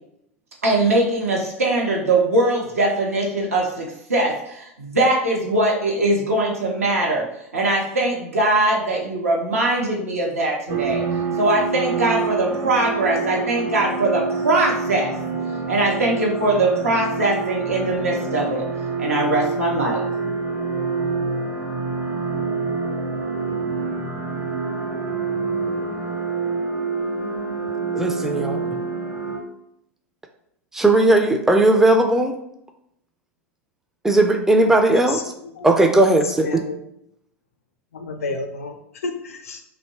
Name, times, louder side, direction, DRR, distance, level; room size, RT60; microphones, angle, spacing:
voice 1, 0.6-7.2 7.5-11.0 11.4-15.1 15.7-18.6 19.0-20.0, right 2 dB, 80° right, -2 dB, 0.7 m, -21 dB
sound 1, 10.7-29.4, right 4 dB, 35° right, 0.7 m, -26 dB
voice 2, 27.9-28.8 30.7-32.4 34.0-35.2 35.6-36.5, right 2 dB, 5° right, 4 dB, 0.3 m, -17 dB
voice 3, 34.9-35.7 36.0-36.8 37.9-39.6, left 4 dB, 75° left, 5 dB, 0.4 m, -31 dB
2.7 x 2.1 x 2.9 m, 0.76 s
figure-of-eight pair, 85°, 8 cm